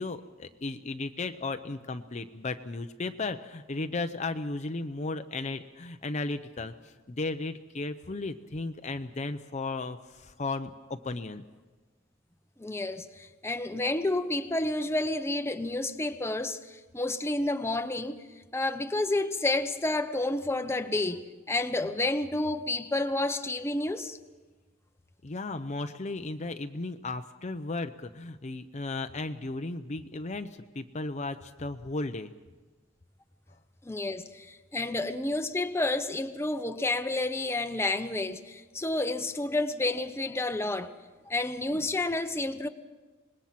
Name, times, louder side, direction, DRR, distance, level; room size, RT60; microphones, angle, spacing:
voice 1, 0.0-11.4 25.2-32.3, left 3 dB, 35° left, 0.7 m, -35 dB
voice 2, 12.6-18.2 18.5-24.2 33.8-40.9 41.3-42.7, left 2 dB, 15° left, 0.9 m, -30 dB
26.0 x 20.5 x 5.9 m
head